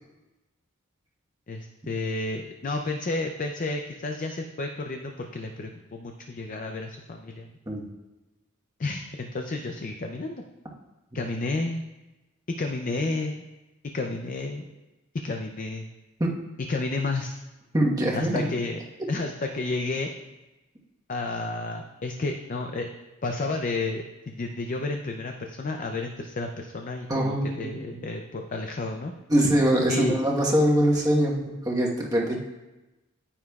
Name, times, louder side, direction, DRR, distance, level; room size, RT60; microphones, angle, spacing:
voice 1, 1.5-7.5 8.8-10.4 11.1-11.9 12.5-13.4 13.9-14.7 15.2-15.9 16.7-17.4 18.2-18.8 19.1-20.1 21.1-22.9 23.2-29.1 29.9-30.2, left 2 dB, 40° left, 4 dB, 0.5 m, -31 dB
voice 2, 17.7-18.4 27.1-27.7 29.3-32.4, right 1 dB, 15° right, -2 dB, 1.2 m, -23 dB
9.9 x 9.6 x 2.3 m, 1.1 s
head